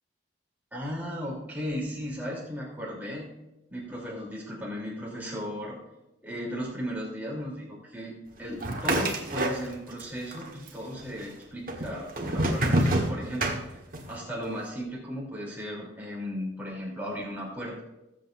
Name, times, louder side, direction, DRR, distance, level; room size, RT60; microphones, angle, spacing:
voice 1, 0.7-3.3 3.7-5.8 6.2-8.1 8.4-13.6 14.1-17.8, equal, 10° right, -5 dB, 3.3 m, -36 dB
sound 1, 8.6-10.0 10.3-11.0 11.7-14.1, right 1 dB, 45° right, 1.4 m, -27 dB
19.5 x 7.8 x 2.6 m, 0.93 s
head